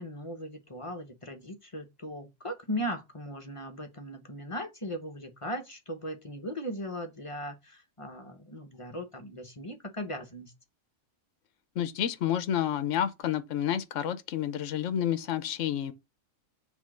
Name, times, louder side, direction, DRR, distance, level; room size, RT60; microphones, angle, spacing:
voice 1, 0.0-10.5, equal, 25° left, 1.0 m, -38 dB
voice 2, 11.8-15.9, left 10 dB, 65° left, 1.2 m, -29 dB
7.3 x 3.6 x 6.3 m
omnidirectional pair, 1.5 m